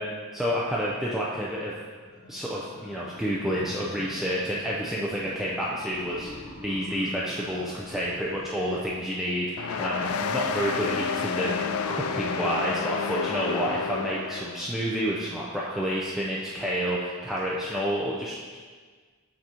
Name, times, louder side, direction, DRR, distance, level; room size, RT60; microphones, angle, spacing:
voice 1, 0.3-1.7 2.3-6.3 6.6-18.6, equal, ahead, -6 dB, 0.5 m, -29 dB
sound 1, 2.1-8.9, left 1 dB, 65° left, 1.1 m, -45 dB
sound 2, 9.6-14.7, left 6 dB, 85° left, 0.3 m, -30 dB
6.3 x 6.0 x 2.9 m, 1.5 s
head